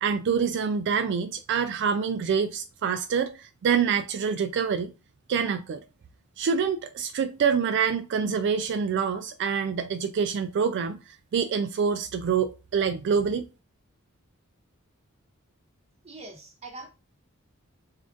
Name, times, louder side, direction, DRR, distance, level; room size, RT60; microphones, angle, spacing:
voice 1, 0.0-4.9 5.3-5.8 6.4-13.4, right 6 dB, 55° right, 0.3 m, -26 dB
voice 2, 16.0-16.9, right 2 dB, 30° right, 0.9 m, -42 dB
3.6 x 2.5 x 3.7 m
head